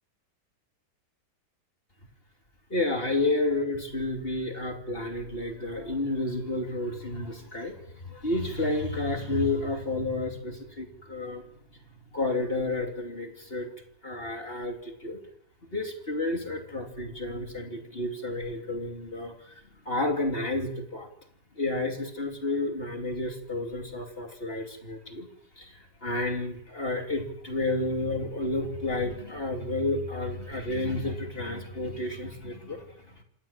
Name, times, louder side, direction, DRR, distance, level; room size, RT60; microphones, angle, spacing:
voice 1, 2.7-11.4 12.1-13.7 14.0-15.2 15.7-21.1 21.6-25.3 25.6-33.2, left 2 dB, 30° left, 3 dB, 3.0 m, -31 dB
27.5 x 14.0 x 8.8 m, 0.73 s
omnidirectional pair, 1.9 m